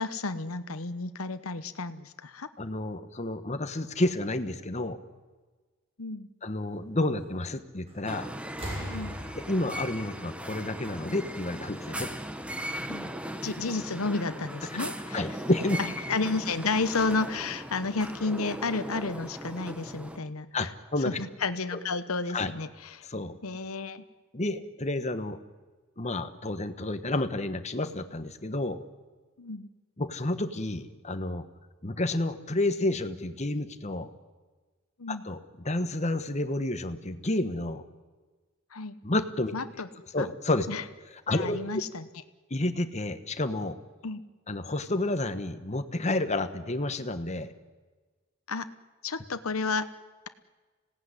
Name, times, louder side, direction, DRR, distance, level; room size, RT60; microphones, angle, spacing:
voice 1, 0.0-2.5 6.0-6.3 8.8-9.2 12.9-13.1 13.4-15.3 15.8-20.7 21.0-23.0 23.4-24.0 29.4-29.7 35.0-35.2 38.7-39.0 39.5-39.9 40.2-40.3 40.7-40.8 41.3-42.1 44.0-44.2 48.5-48.7 49.0-49.8, left 3 dB, 85° left, 11 dB, 1.0 m, -32 dB
voice 2, 2.6-5.0 6.4-8.3 9.4-12.1 14.7-14.8 15.1-15.8 20.5-21.2 21.7-21.8 22.3-22.5 23.0-23.4 24.3-25.4 26.0-28.8 30.0-31.4 31.8-34.1 35.1-37.8 39.0-39.5 40.1-40.7 41.3-41.6 42.5-43.8 44.5-47.5, left 2 dB, 30° left, 9 dB, 1.3 m, -30 dB
sound 1, 7.9-8.2 8.5-11.2 12.4-12.5, equal, 30° right, 7.1 m, -40 dB
sound 2, 8.0-20.2, equal, 5° right, 1.1 m, -38 dB
25.5 x 17.5 x 9.9 m, 1.4 s
head